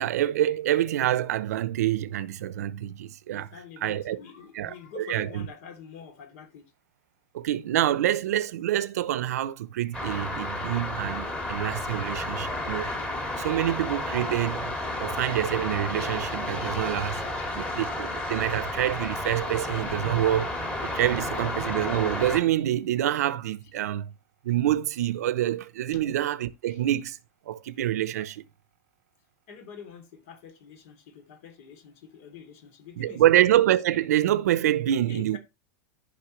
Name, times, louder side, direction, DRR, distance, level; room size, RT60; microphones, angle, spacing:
voice 1, 0.0-3.5 3.8-4.2 4.5-5.5 7.3-12.9 13.4-14.7 15.0-17.2 17.5-20.6 20.9-24.1 24.4-27.2 27.5-28.4 33.0-35.4, right 12 dB, 90° right, 0.8 m, -26 dB
voice 2, 3.3-6.6 25.9-26.0 26.7-26.8 29.5-33.2 35.1-35.4, left 7 dB, 60° left, 3.1 m, -46 dB
sound 1, 9.9-22.4, left 1 dB, 10° left, 2.1 m, -32 dB
13.5 x 5.6 x 3.2 m
supercardioid pair, 160°, 8 cm